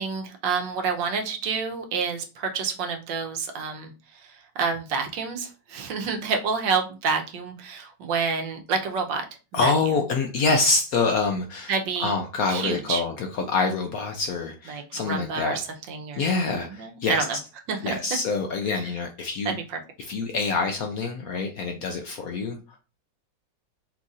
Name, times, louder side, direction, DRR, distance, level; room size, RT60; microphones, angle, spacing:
voice 1, 0.0-3.9 4.2-9.3 9.6-9.7 11.7-12.1 12.5-13.0 14.7-15.6 15.9-16.2 16.7-17.4 17.7-18.0 18.7-18.8 19.4-19.5, right 5 dB, 80° right, 4 dB, 1.5 m, -28 dB
voice 2, 9.5-11.7 12.0-15.6 16.1-17.2 17.8-19.6 20.1-22.8, left 4 dB, 65° left, 3 dB, 0.9 m, -26 dB
4.5 x 2.5 x 4.0 m, 0.32 s
omnidirectional pair, 2.0 m